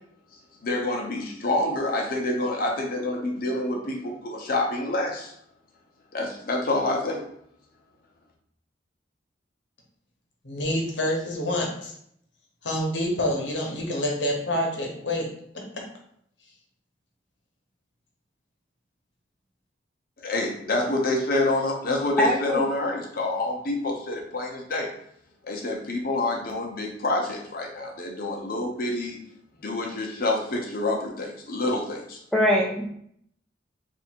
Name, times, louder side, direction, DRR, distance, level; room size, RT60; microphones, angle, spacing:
voice 1, 0.6-5.3 6.1-7.3 20.2-24.9 25.4-29.2 29.6-32.2, left 2 dB, 55° left, 0 dB, 0.9 m, -27 dB
voice 2, 10.4-11.9 12.6-15.3 15.5-15.8, left 1 dB, 75° left, 0 dB, 1.1 m, -27 dB
voice 3, 22.2-22.6 32.3-32.9, equal, ahead, -4 dB, 0.4 m, -22 dB
3.5 x 2.7 x 4.4 m, 0.69 s
head